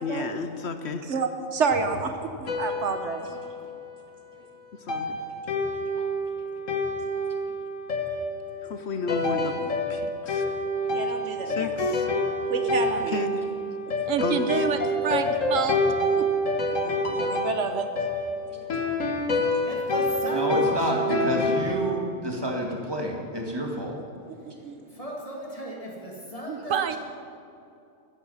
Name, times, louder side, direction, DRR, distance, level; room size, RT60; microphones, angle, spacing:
voice 1, 0.0-1.0 4.7-5.2 8.6-10.6 11.4-12.1 13.1-13.5 14.2-14.6 20.8-21.5, left 4 dB, 60° left, 8 dB, 1.0 m, -33 dB
voice 2, 1.1-3.2 10.9-11.7 12.5-13.2 16.8-17.8 24.4-24.8, right 5 dB, 65° right, 7 dB, 1.3 m, -29 dB
sound 1, 2.5-4.0 4.9-21.7, left 1 dB, 85° left, 1.8 m, -27 dB
voice 3, 5.7-6.3 10.2-10.5 11.2-11.3 19.4-19.5 20.3-24.0, equal, 20° right, 0 dB, 2.2 m, -30 dB
voice 4, 14.1-15.8 16.1-16.2 26.5-27.0, right 8 dB, 90° right, 9 dB, 1.2 m, -27 dB
voice 5, 19.6-21.2 24.9-27.0, equal, 30° left, -1 dB, 2.5 m, -36 dB
15.0 x 13.5 x 5.7 m, 2.6 s
omnidirectional pair, 1.3 m